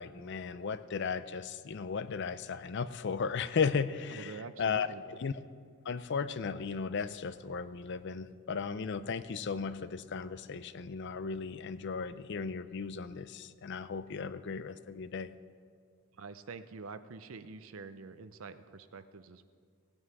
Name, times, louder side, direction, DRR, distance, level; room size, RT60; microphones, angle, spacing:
voice 1, 0.0-4.9 5.2-5.3 5.8-15.3, left 5 dB, 55° left, 13 dB, 0.4 m, -35 dB
voice 2, 4.1-5.2 16.2-19.4, right 4 dB, 65° right, 12 dB, 0.6 m, -46 dB
18.5 x 8.6 x 4.7 m, 2.1 s
head